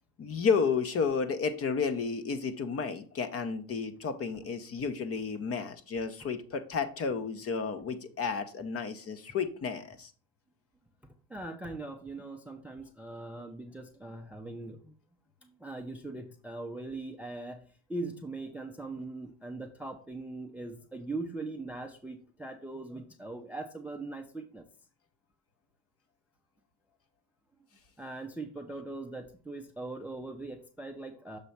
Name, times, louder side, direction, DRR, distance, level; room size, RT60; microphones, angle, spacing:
voice 1, 0.2-10.1, left 5 dB, 30° left, 11 dB, 0.8 m, -32 dB
voice 2, 11.3-14.9 15.4-24.7 28.0-31.4, right 2 dB, 5° right, 6 dB, 0.5 m, -41 dB
6.7 x 3.0 x 5.8 m, 0.42 s
supercardioid pair, 100°, 47 cm